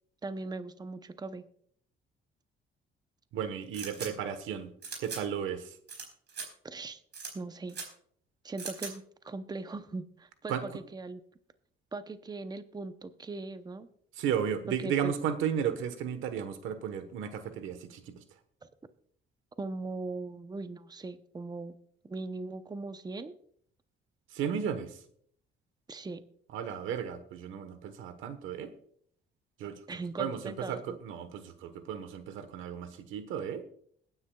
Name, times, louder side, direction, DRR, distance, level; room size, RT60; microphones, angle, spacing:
voice 1, 0.2-1.4 6.6-7.0 7.3-7.8 8.4-11.2 11.9-13.9 14.7-15.1 19.6-21.7 22.0-23.3 25.9-26.2 29.9-31.0, right 3 dB, 20° right, 11 dB, 0.7 m, -39 dB
voice 2, 3.3-4.7 5.0-5.8 10.5-10.7 14.2-18.2 24.3-25.0 26.5-28.7 29.6-29.8 30.2-33.6, right 8 dB, 90° right, 10 dB, 1.2 m, -34 dB
sound 1, 3.7-4.1 4.8-5.2 5.9-6.0 6.3-6.5 7.1-7.3 7.7-7.9 8.6-8.9, right 5 dB, 60° right, 4.3 m, -39 dB
21.5 x 9.7 x 2.3 m, 0.62 s
cardioid pair, 90°, 20 cm